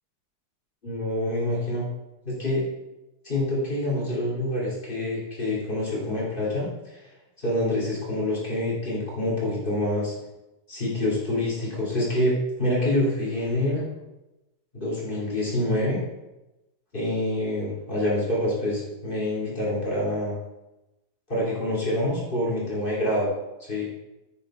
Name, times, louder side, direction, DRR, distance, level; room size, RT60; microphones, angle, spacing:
voice 1, 0.8-1.8 2.2-2.6 3.2-7.0 7.4-10.1 10.7-13.9 14.7-16.0 16.9-20.4 21.3-23.3 23.6-23.9, left 1 dB, 20° left, -5 dB, 1.6 m, -26 dB
9.8 x 9.2 x 4.3 m, 1.0 s
omnidirectional pair, 5.6 m